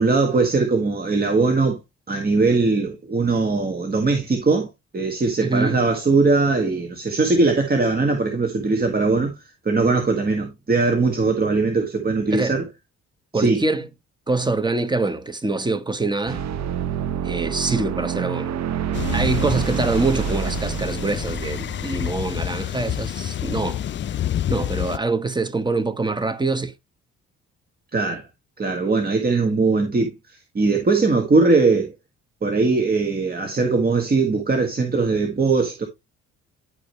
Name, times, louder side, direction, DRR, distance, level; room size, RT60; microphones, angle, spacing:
voice 1, 0.0-1.8 2.1-9.3 9.6-12.6 13.3-13.6 27.9-28.2 28.6-30.1 30.5-31.9 32.4-35.9, right 3 dB, 30° right, 1.8 m, -20 dB
voice 2, 5.4-5.9 12.3-12.6 13.3-13.9 14.3-16.4 17.2-18.5 19.1-23.8 24.5-26.7, right 3 dB, 15° right, 1.2 m, -24 dB
sound 1, 16.3-22.9, right 9 dB, 60° right, 0.9 m, -28 dB
sound 2, 18.9-25.0, left 11 dB, 40° left, 0.4 m, -28 dB
11.0 x 5.1 x 3.1 m
cardioid pair, 90°, 30 cm